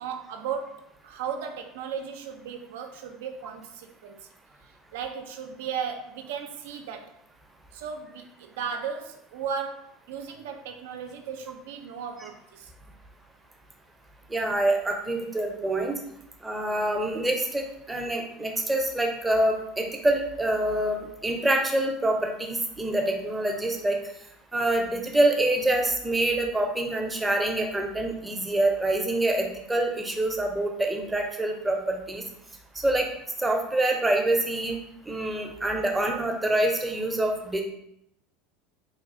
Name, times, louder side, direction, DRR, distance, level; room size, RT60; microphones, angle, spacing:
voice 1, 0.0-4.3 4.9-7.1 7.7-12.7, right 7 dB, 75° right, 5 dB, 0.3 m, -36 dB
voice 2, 14.3-16.0 16.4-24.0 24.5-32.2 32.8-33.1 33.4-34.8 35.1-37.6, right 1 dB, 10° right, 2 dB, 0.6 m, -26 dB
3.1 x 2.3 x 2.5 m, 0.75 s
hypercardioid pair, 85°, 0 cm